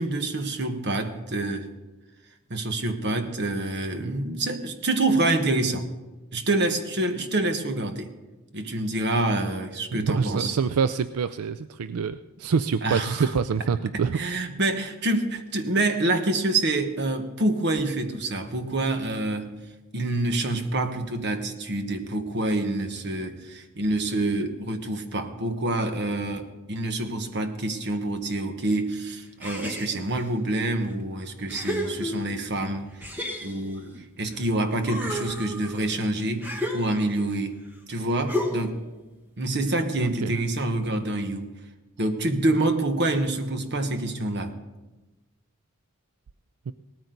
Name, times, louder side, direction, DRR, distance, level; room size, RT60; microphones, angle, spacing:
voice 1, 0.0-1.7 2.5-5.9 6.3-8.1 8.5-10.6 12.8-13.3 14.1-19.5 19.9-33.9 34.2-37.6 37.9-38.8 39.4-41.5 42.0-44.5, right 2 dB, 50° right, 7 dB, 1.3 m, -27 dB
voice 2, 9.9-14.2 40.0-40.4 46.7-46.8, right 6 dB, 85° right, 13 dB, 0.4 m, -26 dB
sound 1, 29.4-30.3 30.9-31.0 31.5-32.5 33.0-34.4 34.8-37.3 38.3-38.8, left 1 dB, 10° right, 1.3 m, -33 dB
18.5 x 13.5 x 4.0 m, 1.1 s
head